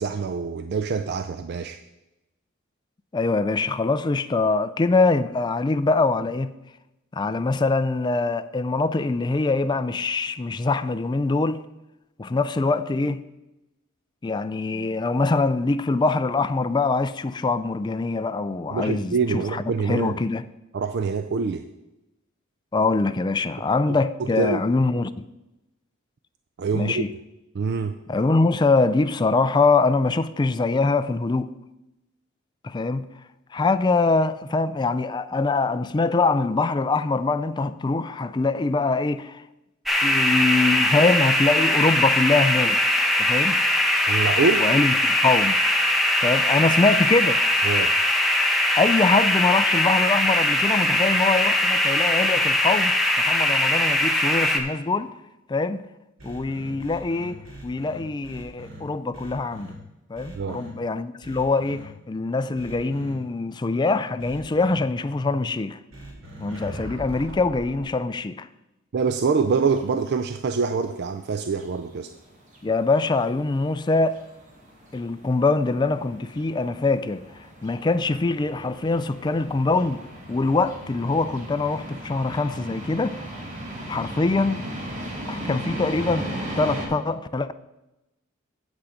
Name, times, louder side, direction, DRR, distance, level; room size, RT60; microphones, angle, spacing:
voice 1, 0.0-1.8 18.7-20.2 20.7-21.7 23.9-24.6 26.6-27.0 27.5-28.0 44.1-44.7 47.6-47.9 60.3-60.6 68.9-72.1, right 5 dB, 55° right, 0.4 m, -25 dB
voice 2, 3.1-6.5 7.1-11.7 12.2-13.2 14.2-20.4 22.7-25.3 26.7-27.1 28.1-31.5 32.6-33.1 33.5-39.4 40.0-42.8 43.2-43.6 44.6-45.6 46.2-47.4 48.8-55.1 55.5-55.8 56.2-59.7 60.1-65.8 66.4-68.5 72.6-74.2 74.9-77.2 77.6-80.0 80.3-83.3 83.9-84.6 85.3-87.5, left 3 dB, 20° left, 0.4 m, -23 dB
sound 1, 39.9-54.6, left 1 dB, ahead, 1.0 m, -21 dB
sound 2, 56.2-58.8 59.1-59.7 60.1-60.7 61.2-61.8 62.5-63.1 64.2-64.7 65.9-67.9, equal, 80° right, 3.0 m, -40 dB
sound 3, 69.5-86.9, right 1 dB, 35° right, 1.8 m, -37 dB
8.3 x 8.3 x 5.0 m
head